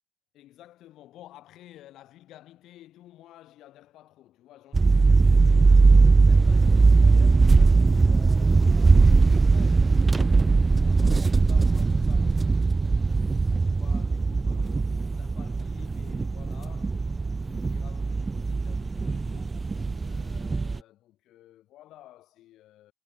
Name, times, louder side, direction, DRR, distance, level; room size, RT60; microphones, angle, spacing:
voice 1, 0.3-8.9 9.4-17.1 17.4-19.6 20.0-22.9, left 14 dB, 85° left, 5.2 m, -52 dB
sound 1, 4.7-20.8, right 4 dB, 20° right, 0.4 m, -20 dB
cardioid pair, 175°, 0 cm